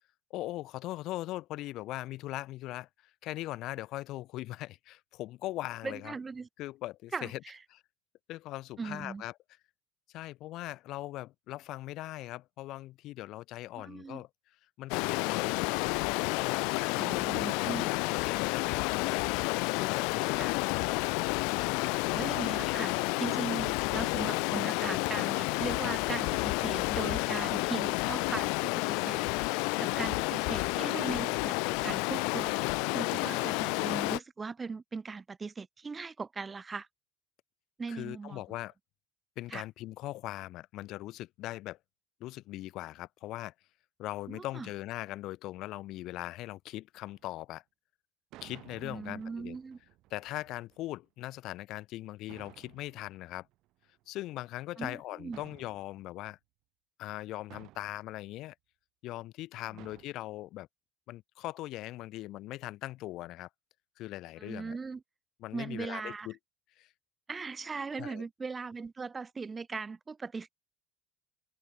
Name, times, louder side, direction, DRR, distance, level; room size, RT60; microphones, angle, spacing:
voice 1, 0.3-2.9 3.2-6.1 6.6-7.4 7.7-7.8 8.3-9.3 10.1-14.3 14.8-16.0 16.4-17.3 17.8-19.2 19.8-20.9 21.6-22.8 37.9-38.7 39.4-41.8 42.2-43.5 44.0-47.6 48.4-49.6 50.1-53.5 54.1-56.4 57.0-58.5 59.0-60.7 61.1-63.5 64.0-64.8 65.4-66.4 66.8-66.9 67.9-68.3, left 16 dB, 55° left, 6.7 m, -40 dB
voice 2, 5.8-6.5 7.1-7.6 8.8-9.2 13.8-14.2 16.9-17.9 20.3-20.5 22.1-22.9 23.2-32.6 32.9-36.9 37.8-38.4 39.5-39.6 44.3-44.7 48.8-49.8 54.8-55.4 59.7-59.8 64.4-65.0 65.5-66.3 67.3-70.5, right 4 dB, 20° right, 0.9 m, -39 dB
Stream, 14.9-34.2, left 34 dB, 75° left, 0.5 m, -30 dB
sound 1, 47.1-47.4 48.3-51.0 52.3-54.0 55.3-56.3 57.5-58.2 59.8-60.0, right 17 dB, 60° right, 4.4 m, -55 dB
cardioid pair, 145°, 0 cm